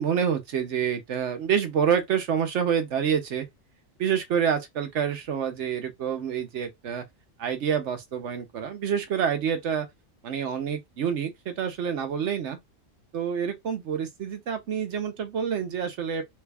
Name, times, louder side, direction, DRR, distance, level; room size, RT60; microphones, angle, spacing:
voice 1, 0.0-3.5 4.0-7.0 7.4-9.9 10.2-12.6 13.1-16.2, right 7 dB, 65° right, 1.0 m, -27 dB
3.3 x 2.3 x 3.3 m
omnidirectional pair, 1.4 m